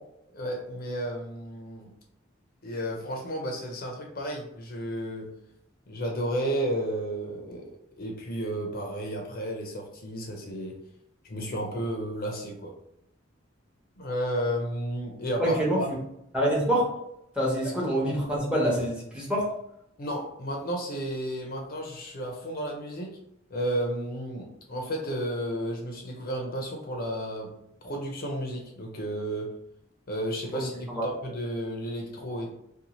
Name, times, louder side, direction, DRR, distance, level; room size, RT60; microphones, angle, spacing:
voice 1, 0.3-1.9 2.6-5.3 5.9-7.7 8.0-10.8 11.3-12.7 14.0-15.9 17.6-17.8 20.0-23.2 23.5-27.5 27.8-29.5 30.1-32.5, equal, 50° left, 1 dB, 0.6 m, -32 dB
voice 2, 15.4-15.8 16.3-16.9 17.3-19.5 30.5-31.1, equal, 5° right, -4 dB, 0.9 m, -26 dB
2.6 x 2.3 x 2.9 m, 0.78 s
head